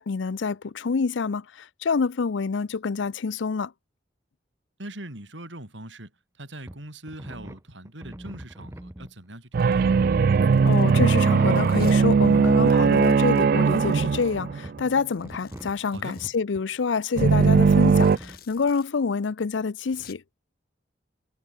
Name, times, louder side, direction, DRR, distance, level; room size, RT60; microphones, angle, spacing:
voice 1, 0.0-3.7 10.6-20.2, left 5 dB, 85° left, 0.5 m, -27 dB
voice 2, 4.8-6.1 6.4-10.0 15.9-16.2 17.5-17.7, right 1 dB, 85° right, 7.4 m, -41 dB
sound 1, 6.7-6.8 7.1-9.1 9.5-13.0 13.7-14.9 15.2-16.6 17.2-17.3 18.2-18.4, equal, 15° right, 1.2 m, -42 dB
Domestic sounds home sounds, 9.5-9.8 10.3-11.0 11.6-12.0 12.3-12.4 12.6-14.3 15.1-16.4 17.3-18.9 19.1-19.2 19.6-20.1, left 8 dB, 55° left, 3.5 m, -53 dB
sound 2, 9.5-15.0 17.2-18.2, right 5 dB, 50° right, 0.3 m, -19 dB
head